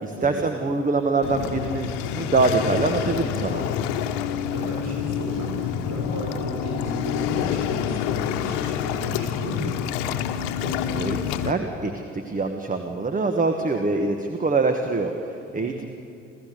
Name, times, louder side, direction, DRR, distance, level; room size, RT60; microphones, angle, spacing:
voice 1, 0.0-3.6 10.6-15.9, right 3 dB, 20° right, 6 dB, 1.5 m, -25 dB
Waves surf, 1.2-11.5, left 9 dB, 65° left, 1.2 m, -27 dB
voice 2, 4.5-9.8 15.5-15.9, right 1 dB, 45° right, -2 dB, 5.9 m, -34 dB
28.5 x 14.5 x 6.8 m, 2.6 s
figure-of-eight pair, 55°, 36 cm